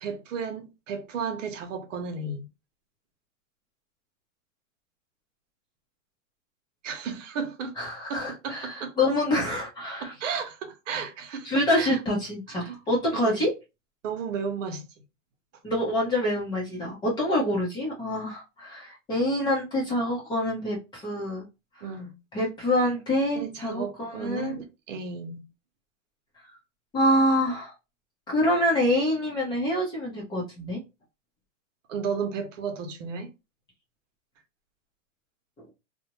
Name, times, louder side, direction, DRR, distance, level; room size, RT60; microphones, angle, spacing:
voice 1, 0.0-2.4 6.8-7.7 8.1-8.9 10.0-12.0 12.5-12.8 13.1-13.4 14.0-14.8 21.8-22.1 23.4-25.4 31.9-33.3, right 5 dB, 70° right, 0.8 m, -34 dB
voice 2, 7.8-10.1 11.4-13.5 15.6-21.5 22.3-24.6 26.9-27.7 28.3-30.8, left 1 dB, 10° left, 0.6 m, -26 dB
2.5 x 2.1 x 2.9 m
hypercardioid pair, 150°, 40 cm